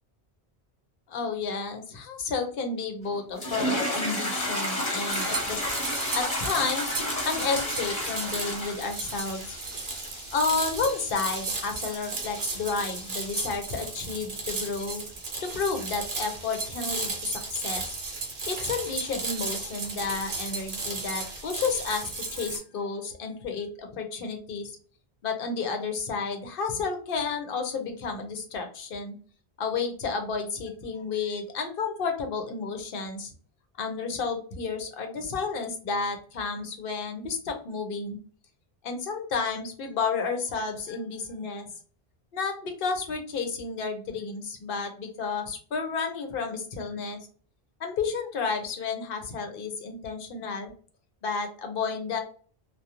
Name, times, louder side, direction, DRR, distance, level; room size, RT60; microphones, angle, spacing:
voice 1, 1.1-5.6 6.1-7.0 7.3-9.6 10.3-15.0 15.4-17.9 18.5-24.8 25.2-29.1 29.6-33.3 33.8-38.2 38.8-41.7 42.3-47.2 47.8-50.7 51.2-52.2, left 4 dB, 65° left, 5 dB, 0.8 m, -31 dB
sound 1, 3.4-13.5, left 1 dB, 40° left, 0.9 m, -33 dB
sound 2, 5.1-22.6, right 3 dB, 50° right, 0.8 m, -35 dB
2.3 x 2.2 x 2.8 m, 0.43 s
omnidirectional pair, 1.0 m